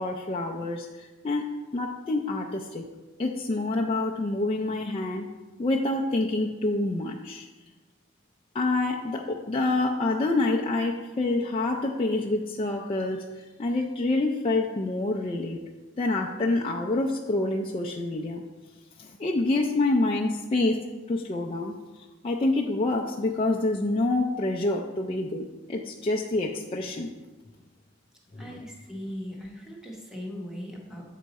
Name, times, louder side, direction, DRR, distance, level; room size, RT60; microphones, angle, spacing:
voice 1, 0.0-1.4 1.7-2.8 3.2-5.3 5.6-7.5 8.5-15.6 16.0-18.4 19.0-27.1 28.3-28.6, left 2 dB, 30° left, -2 dB, 0.4 m, -27 dB
voice 2, 28.4-31.1, equal, 5° right, -1 dB, 1.0 m, -39 dB
7.6 x 4.6 x 4.1 m, 1.2 s
head